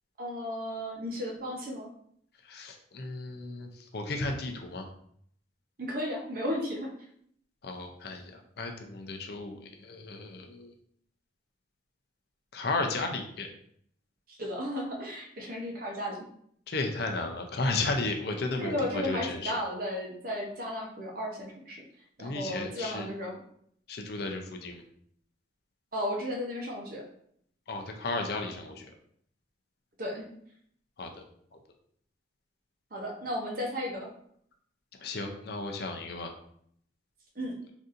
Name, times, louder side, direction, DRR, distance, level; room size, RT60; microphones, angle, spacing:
voice 1, 0.2-1.9 5.8-6.9 14.3-16.2 18.6-21.8 22.2-23.4 25.9-27.0 30.0-30.3 32.9-34.1 37.4-37.5, equal, 50° right, 0 dB, 0.7 m, -34 dB
voice 2, 2.5-4.9 7.6-10.7 12.5-13.5 16.7-19.5 22.2-23.1 23.9-24.8 27.7-28.9 31.0-31.1 35.0-36.3, left 3 dB, 55° left, 4 dB, 0.5 m, -34 dB
4.0 x 2.6 x 2.5 m, 0.66 s
head